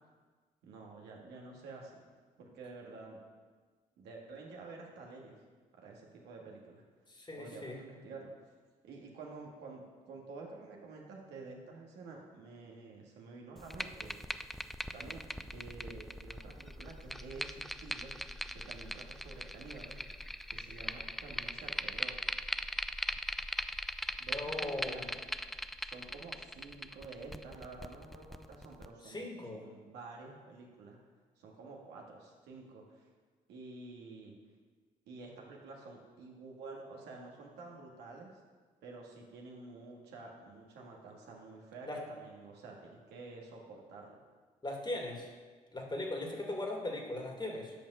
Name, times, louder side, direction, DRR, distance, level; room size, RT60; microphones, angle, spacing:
voice 1, 0.6-2.0 2.4-3.2 4.0-5.4 5.7-6.8 7.4-8.5 8.8-14.2 14.9-18.2 18.5-20.0 20.5-22.1 24.2-25.1 25.8-29.3 29.5-31.0 31.4-33.1 33.5-34.4 35.1-38.4 38.8-44.2, right 3 dB, 80° right, -1 dB, 1.8 m, -49 dB
voice 2, 7.1-7.8 24.3-25.1 29.0-29.6 41.9-42.0 44.6-45.3 45.7-47.7, left 2 dB, 25° left, 1 dB, 2.4 m, -39 dB
sound 1, 13.6-28.9, equal, ahead, 0.5 m, -40 dB
8.9 x 5.3 x 6.6 m, 1.4 s
supercardioid pair, 50°, 17 cm